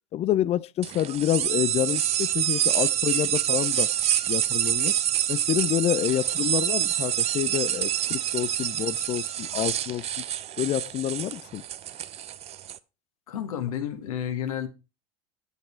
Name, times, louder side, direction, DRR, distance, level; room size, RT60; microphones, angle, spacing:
voice 1, 0.1-3.9 4.3-4.9 5.3-10.2 10.6-11.6, left 12 dB, 35° left, 0.5 m, -28 dB
sound 1, 0.8-12.8, right 11 dB, 35° right, 0.7 m, -27 dB
voice 2, 13.3-14.7, left 9 dB, 75° left, 2.0 m, -31 dB
8.5 x 8.1 x 4.3 m
hypercardioid pair, 85°, 18 cm